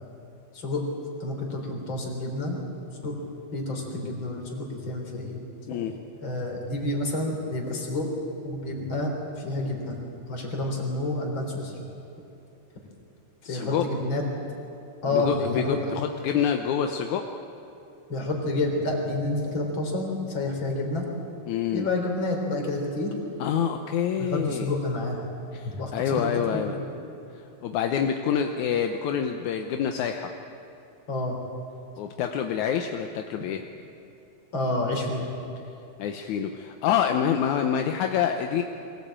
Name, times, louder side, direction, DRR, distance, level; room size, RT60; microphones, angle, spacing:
voice 1, 1.2-3.2 3.5-5.9 6.2-8.1 8.4-9.1 9.4-10.0 10.3-11.8 13.4-14.2 15.0-15.9 18.1-21.1 21.7-23.1 24.2-25.3 25.6-26.9 31.1-31.4 34.5-35.3, left 2 dB, 40° left, 1 dB, 4.2 m, -29 dB
voice 2, 13.5-13.9 15.1-17.3 21.5-21.9 23.4-24.7 25.5-26.8 27.6-30.3 32.0-33.7 36.0-38.6, left 8 dB, 80° left, 5 dB, 2.3 m, -27 dB
23.0 x 18.0 x 8.9 m, 2.9 s
omnidirectional pair, 3.4 m